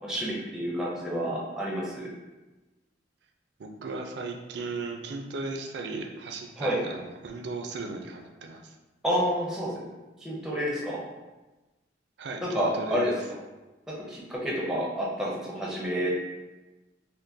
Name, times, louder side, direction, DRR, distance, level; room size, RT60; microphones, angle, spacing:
voice 1, 0.0-2.1 6.6-6.8 9.0-9.9 10.2-11.0 12.4-13.1 14.1-16.2, equal, 5° right, -4 dB, 0.5 m, -29 dB
voice 2, 3.6-8.7 12.2-13.2, right 3 dB, 65° right, 3 dB, 0.4 m, -36 dB
3.6 x 2.5 x 2.6 m, 1.1 s
head